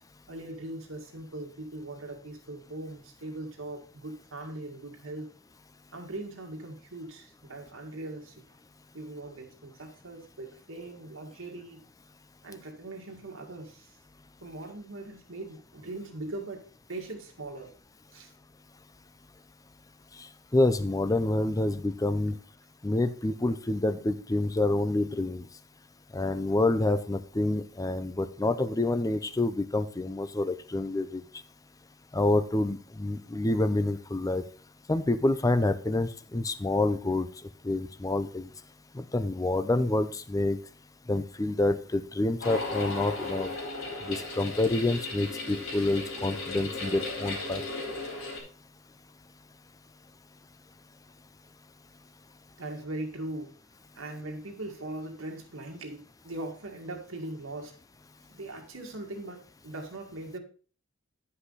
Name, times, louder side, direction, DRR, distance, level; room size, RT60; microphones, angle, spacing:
voice 1, 0.3-5.3 5.9-8.4 8.9-11.8 12.4-14.0 14.4-17.7 18.1-18.3 52.6-53.5 53.9-57.7 58.3-60.4, right 2 dB, 75° right, 2 dB, 1.9 m, -40 dB
voice 2, 20.2-22.4 22.8-25.5 26.1-31.2 32.1-34.4 34.9-37.3 37.6-38.5 38.9-40.6 41.1-43.5 44.0-47.6, left 2 dB, 15° left, 12 dB, 0.5 m, -27 dB
sound 1, 42.4-48.4, left 3 dB, 70° left, 2.7 m, -36 dB
10.0 x 5.7 x 4.0 m, 0.39 s
head